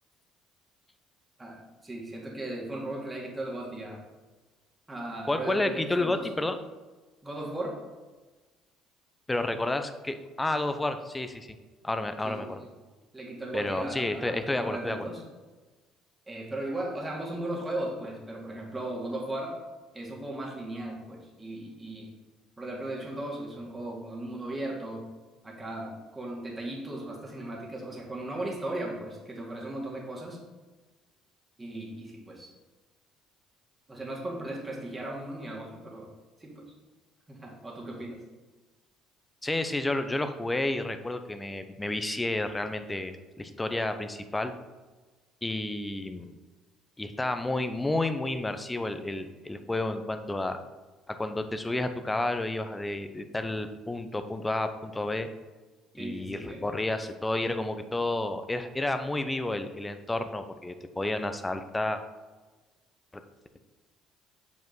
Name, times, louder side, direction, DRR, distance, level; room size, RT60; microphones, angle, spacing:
voice 1, 1.4-4.0 4.9-6.3 7.2-7.8 12.2-12.7 13.1-15.2 16.3-19.6 19.9-22.1 22.6-25.1 25.4-30.4 31.6-32.5 33.9-36.1 36.4-36.6 37.3-38.2 56.0-56.7, right 1 dB, 20° right, -3 dB, 2.4 m, -37 dB
voice 2, 5.3-6.6 9.3-11.5 11.8-12.6 13.5-15.0 39.4-44.5 45.4-46.3 47.0-50.6 51.1-55.3 55.9-62.0, left 2 dB, 15° left, 8 dB, 0.7 m, -31 dB
7.0 x 5.2 x 4.0 m, 1.3 s
hypercardioid pair, 65°, 0 cm